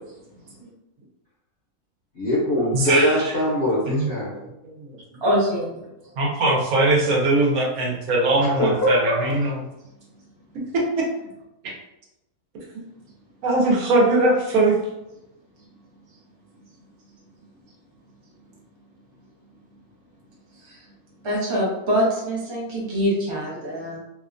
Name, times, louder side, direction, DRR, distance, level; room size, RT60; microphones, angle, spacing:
voice 1, 2.2-4.3 8.4-9.3, equal, 55° left, -6 dB, 0.7 m, -22 dB
voice 2, 2.7-3.3 3.9-4.7 6.2-9.6 10.7-11.0 13.4-14.8, right 2 dB, 75° right, -2 dB, 1.2 m, -21 dB
voice 3, 5.2-5.9 20.6-20.8 21.2-24.0, equal, 35° right, -5 dB, 0.4 m, -24 dB
2.8 x 2.2 x 2.4 m, 0.91 s
omnidirectional pair, 1.6 m